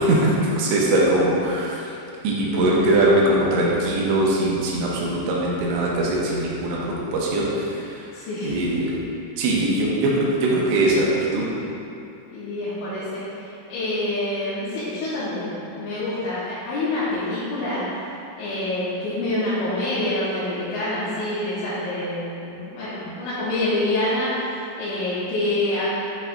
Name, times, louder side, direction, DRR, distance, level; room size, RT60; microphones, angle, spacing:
voice 1, 0.0-1.8 2.2-8.0 8.4-8.9 9.4-11.5, right 1 dB, 80° right, -4 dB, 3.1 m, -21 dB
voice 2, 8.1-8.6 12.3-17.9 18.4-25.9, left 1 dB, 80° left, -13 dB, 3.6 m, -26 dB
9.1 x 5.6 x 2.4 m, 2.8 s
omnidirectional pair, 5.5 m